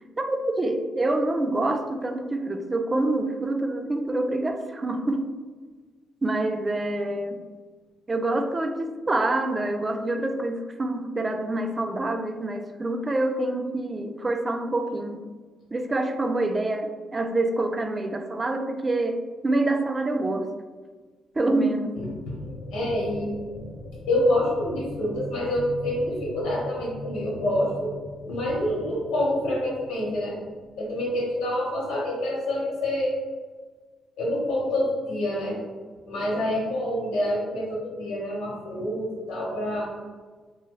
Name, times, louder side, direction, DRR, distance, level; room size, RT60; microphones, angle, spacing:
voice 1, 0.2-5.3 6.2-7.4 8.1-15.2 15.7-20.5 21.4-22.0, right 2 dB, 25° right, 6 dB, 0.3 m, -26 dB
voice 2, 22.0-22.3 22.7-23.4 24.1-27.9 28.2-30.4 30.8-33.2 34.2-35.6 36.0-39.9, left 1 dB, 90° left, -4 dB, 1.1 m, -27 dB
sound 1, 22.4-31.1, left 2 dB, 70° left, 0.3 m, -40 dB
2.9 x 2.2 x 3.1 m, 1.4 s
cardioid pair, 90°, 0 cm